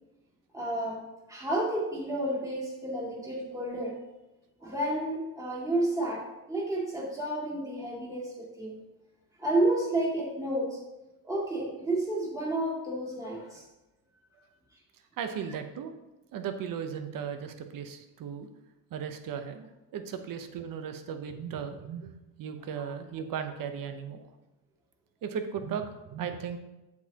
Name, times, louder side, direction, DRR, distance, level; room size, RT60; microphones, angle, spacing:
voice 1, 0.5-1.0 1.3-4.0 4.6-8.8 9.4-10.8 11.2-13.6, right 1 dB, 10° right, -5 dB, 2.2 m, -31 dB
voice 2, 15.2-15.9 16.3-18.5 18.9-24.3 25.2-26.6, right 7 dB, 60° right, 8 dB, 0.9 m, -36 dB
7.9 x 7.4 x 2.9 m, 1.0 s
cardioid pair, 105°, 37 cm